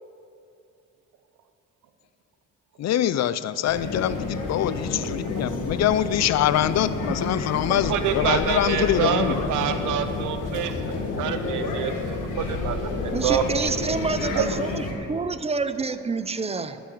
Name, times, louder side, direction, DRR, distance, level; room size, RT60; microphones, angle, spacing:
voice 1, 2.8-9.5, left 11 dB, 60° left, 15 dB, 0.5 m, -24 dB
sound 1, 3.6-14.9, left 3 dB, 85° left, 1.6 m, -30 dB
voice 2, 7.7-10.7 11.2-13.7 14.3-14.7, right 8 dB, 85° right, 8 dB, 0.9 m, -27 dB
voice 3, 13.1-16.8, right 4 dB, 20° right, 12 dB, 0.6 m, -28 dB
12.5 x 6.1 x 8.3 m, 2.7 s
cardioid pair, 90°, 30 cm